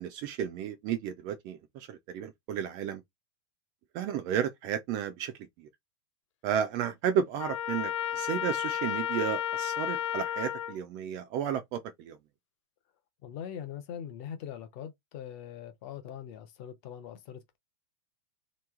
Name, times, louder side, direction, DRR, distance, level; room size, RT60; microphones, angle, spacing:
voice 1, 0.0-3.0 3.9-5.3 6.4-11.8 12.0-12.2, right 8 dB, 25° right, 0.4 m, -32 dB
Trumpet, 7.4-10.8, left 10 dB, 90° left, 0.5 m, -32 dB
voice 2, 13.2-17.6, left 9 dB, 30° left, 0.6 m, -42 dB
3.0 x 2.7 x 3.6 m
supercardioid pair, 180°, 15 cm